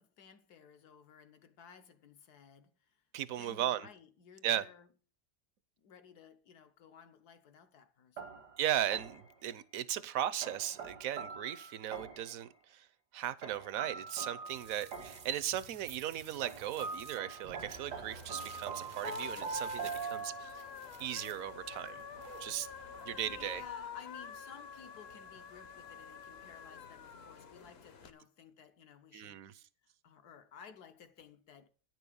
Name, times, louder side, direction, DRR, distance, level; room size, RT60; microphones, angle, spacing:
voice 1, 0.0-3.0 3.4-4.9 5.8-8.4 22.5-23.0 23.3-31.7, left 7 dB, 75° left, 1.5 m, -57 dB
voice 2, 3.1-3.9 4.4-4.7 8.6-12.9 13.1-20.5 21.0-22.0 22.4-22.7 23.0-23.6 29.1-29.5, right 11 dB, 65° right, 1.0 m, -37 dB
sound 1, 8.2-9.4 10.4-12.4 13.4-15.4 16.4-20.7, right 5 dB, 85° right, 1.9 m, -43 dB
sound 2, 14.5-23.7, right 6 dB, 50° right, 0.6 m, -54 dB
sound 3, 17.6-28.1, left 6 dB, 50° left, 0.9 m, -48 dB
9.8 x 6.2 x 6.8 m
omnidirectional pair, 1.7 m